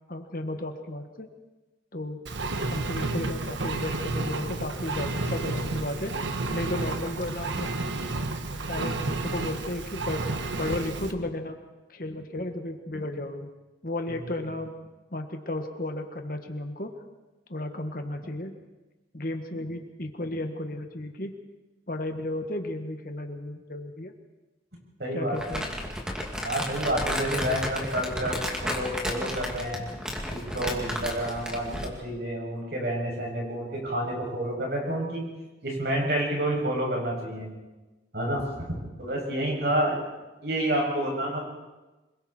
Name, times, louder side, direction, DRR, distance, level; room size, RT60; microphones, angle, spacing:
voice 1, 0.1-1.3 1.9-2.2 2.6-6.1 6.5-7.7 8.7-10.2 10.6-11.6 11.9-13.5 13.8-14.7 15.1-16.9 17.5-18.5 19.1-21.3 21.9-24.1 25.1-25.7, left 1 dB, 50° left, 5 dB, 1.7 m, -33 dB
Engine, 2.3-11.1, right 2 dB, 80° right, 1.4 m, -31 dB
voice 2, 25.0-25.7 26.4-29.9 30.3-35.3 35.6-37.5 38.1-38.4 39.0-40.0 40.4-41.4, right 1 dB, 60° right, -1 dB, 7.4 m, -29 dB
Crumpling crinkling, 25.4-32.0, equal, 5° right, 2.3 m, -33 dB
26.0 x 22.5 x 4.5 m, 1.1 s
head